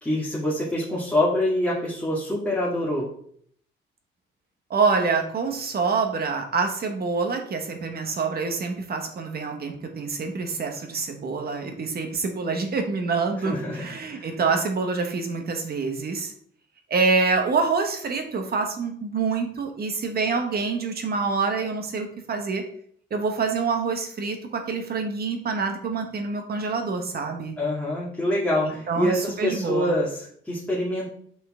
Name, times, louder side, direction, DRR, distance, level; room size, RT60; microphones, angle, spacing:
voice 1, 0.0-3.1 13.4-14.3 27.6-31.1, left 1 dB, 5° left, -8 dB, 2.3 m, -26 dB
voice 2, 4.7-16.3 16.9-22.6 23.1-27.6 28.9-30.0, right 4 dB, 50° right, 4 dB, 1.4 m, -26 dB
6.2 x 5.5 x 3.7 m, 0.63 s
cardioid pair, 90°, 20 cm